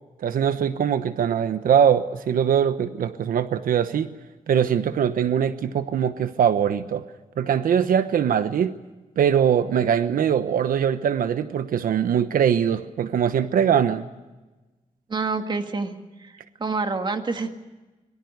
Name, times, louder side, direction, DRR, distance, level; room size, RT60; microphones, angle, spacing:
voice 1, 0.2-4.2 4.5-7.0 7.4-8.7 9.2-14.1, right 8 dB, 85° right, 11 dB, 1.1 m, -22 dB
voice 2, 15.1-15.9 16.2-17.5, right 4 dB, 35° right, 6 dB, 2.0 m, -27 dB
25.5 x 23.0 x 6.7 m, 1.2 s
wide cardioid pair, 145°, 14 cm